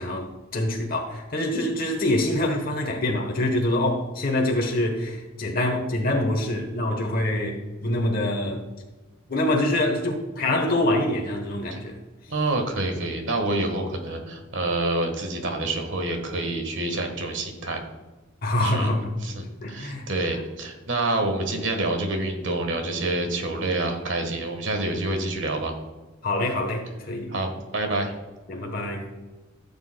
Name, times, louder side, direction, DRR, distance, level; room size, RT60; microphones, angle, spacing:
voice 1, 0.0-8.6 9.3-12.0 18.4-19.1 19.6-20.1 26.2-27.4 28.5-29.0, left 1 dB, 45° left, 1 dB, 1.1 m, -25 dB
voice 2, 12.3-17.8 18.6-18.9 19.2-25.7 27.3-28.1, right 2 dB, 65° right, 4 dB, 1.4 m, -27 dB
15.5 x 6.9 x 2.2 m, 1.2 s
head